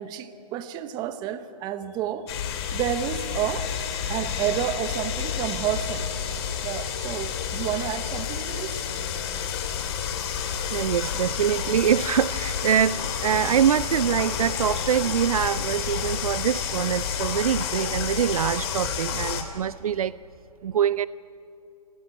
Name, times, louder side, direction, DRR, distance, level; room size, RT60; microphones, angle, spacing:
voice 1, 0.0-2.3 2.7-3.7 4.1-6.1 6.6-8.8, right 10 dB, 20° right, 11 dB, 1.0 m, -30 dB
sound 1, 2.3-19.4, left 8 dB, 40° left, 2.5 m, -30 dB
voice 2, 10.7-20.2 20.6-21.1, right 9 dB, 60° right, 19 dB, 0.4 m, -24 dB
26.5 x 15.5 x 8.8 m, 2.7 s
hypercardioid pair, 145°, 21 cm